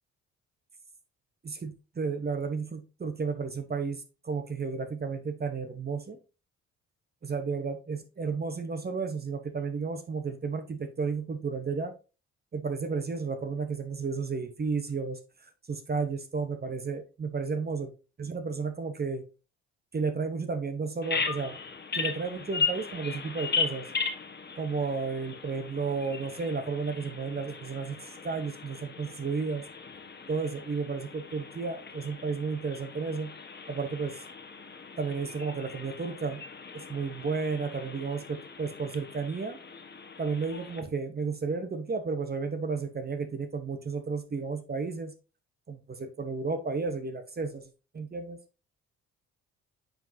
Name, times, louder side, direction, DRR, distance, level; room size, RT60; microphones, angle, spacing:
voice 1, 1.4-6.2 7.2-11.9 12.5-17.9 18.2-19.2 19.9-21.6 21.9-23.9 24.6-29.6 30.3-33.3 33.7-34.2 35.0-36.4 36.7-39.6 40.2-45.1 45.7-48.4, right 4 dB, 30° right, 8 dB, 1.0 m, -33 dB
Bird vocalization bird call bird song, 21.0-40.8, left 5 dB, 35° left, 1.3 m, -38 dB
9.1 x 3.9 x 2.7 m, 0.32 s
supercardioid pair, 65°, 30 cm